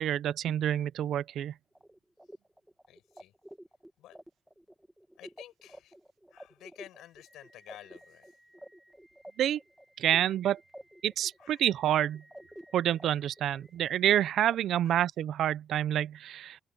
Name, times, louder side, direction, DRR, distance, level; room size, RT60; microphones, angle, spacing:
voice 1, 0.0-1.5 9.4-9.6 10.0-10.6 11.0-12.2 12.7-16.6, right 11 dB, 75° right, 0.6 m, -28 dB
sound 1, 1.7-14.6, right 1 dB, 5° right, 1.8 m, -52 dB
voice 2, 2.9-3.3 4.0-4.2 5.2-6.0 6.3-8.4 11.4-11.7 14.8-15.1, left 13 dB, 85° left, 5.4 m, -52 dB
open air
cardioid pair, 90°, 0 cm